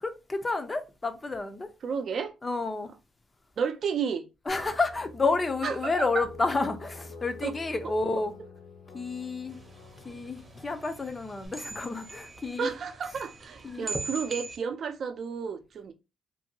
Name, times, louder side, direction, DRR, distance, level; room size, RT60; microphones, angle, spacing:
voice 1, 0.0-1.7 2.4-2.9 4.5-8.3 8.9-9.6 10.1-12.7 13.6-13.9, left 3 dB, 25° left, 0.5 m, -30 dB
voice 2, 1.8-2.3 3.6-4.2 5.6-6.2 7.4-7.5 7.8-7.9 12.6-15.9, right 6 dB, 55° right, 0.5 m, -32 dB
sound 1, 4.5-11.5, left 3 dB, 90° left, 0.8 m, -48 dB
sound 2, 9.5-14.6, right 3 dB, 20° right, 0.8 m, -41 dB
2.7 x 2.6 x 2.7 m
cardioid pair, 90°, 0 cm